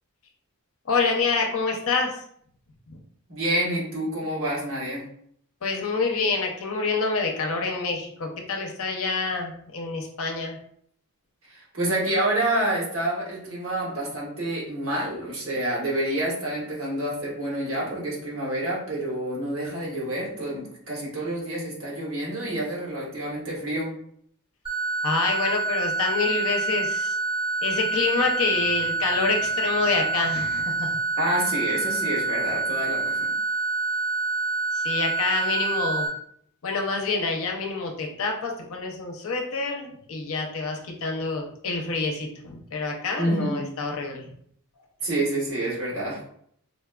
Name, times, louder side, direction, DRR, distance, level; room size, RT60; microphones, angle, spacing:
voice 1, 0.9-2.2 2.9-3.0 5.6-10.6 25.0-27.2 27.6-31.0 34.7-36.1 36.6-44.3, left 4 dB, 65° left, 1 dB, 0.6 m, -27 dB
voice 2, 3.3-5.1 11.5-23.9 31.2-33.3 43.2-43.7 45.0-46.2, right 1 dB, 65° right, -4 dB, 1.3 m, -28 dB
sound 1, 24.6-36.1, right 3 dB, 25° right, 1.4 m, -27 dB
4.0 x 2.3 x 2.3 m, 0.65 s
head